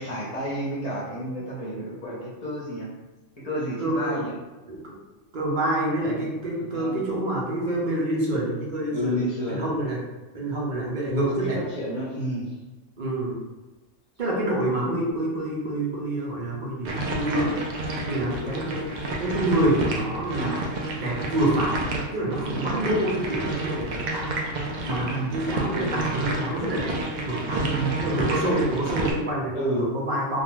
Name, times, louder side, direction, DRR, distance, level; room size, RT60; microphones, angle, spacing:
voice 1, 0.0-2.9 3.4-4.4 6.7-7.0 8.9-9.6 11.3-12.5 18.2-18.6 20.3-20.6 22.4-22.7 25.0-25.3 25.7-25.9 27.5-27.9 28.4-28.6 29.5-29.9, right 1 dB, 35° left, -7 dB, 0.8 m, -30 dB
voice 2, 3.8-4.2 4.7-5.0 5.3-9.2 9.5-10.0 10.3-11.6 13.0-13.4 14.2-17.6 18.1-18.8 19.2-20.6 21.0-21.7 22.1-26.9 27.2-27.6 28.0-30.4, right 1 dB, 50° right, -4 dB, 0.7 m, -27 dB
sound 1, 16.8-29.1, right 2 dB, 80° right, 0.4 m, -30 dB
2.5 x 2.3 x 3.0 m, 1.2 s
omnidirectional pair, 1.3 m